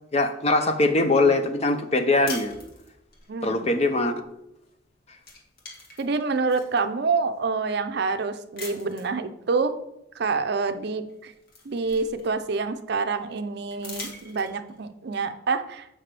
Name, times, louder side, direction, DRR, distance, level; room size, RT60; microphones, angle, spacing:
voice 1, 0.1-2.5 3.4-4.1, left 2 dB, 35° left, 7 dB, 0.6 m, -22 dB
sound 1, 2.3-3.3 4.7-4.9 5.2-6.8 7.4-7.5 8.6-9.2 10.6-10.7 11.1-12.6 13.7-14.8, left 3 dB, 50° left, 1.7 m, -41 dB
voice 2, 6.0-9.7 10.2-11.3 11.7-15.9, right 4 dB, 60° right, 10 dB, 0.5 m, -27 dB
7.5 x 5.7 x 3.3 m, 0.84 s
head